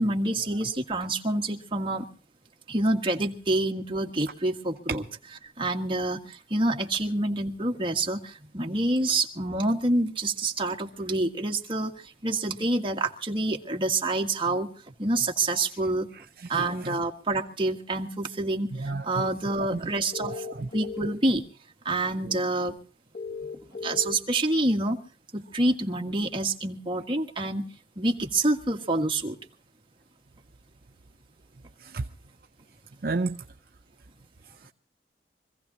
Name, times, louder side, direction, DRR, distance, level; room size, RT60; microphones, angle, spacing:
voice 1, 0.0-2.1 2.7-5.0 5.6-14.7 15.0-16.1 16.5-20.4 20.7-21.4 21.8-22.8 23.8-25.0 25.3-27.7 28.0-29.4, right 2 dB, 30° right, 1.6 m, -27 dB
voice 2, 16.5-17.0 18.8-19.3 19.6-19.8 20.2-20.7 31.9-32.0 33.0-33.4, right 3 dB, 55° right, 0.6 m, -31 dB
sound 1, 20.1-21.1 23.1-24.1, left 5 dB, 60° left, 1.6 m, -36 dB
25.0 x 16.0 x 2.8 m
head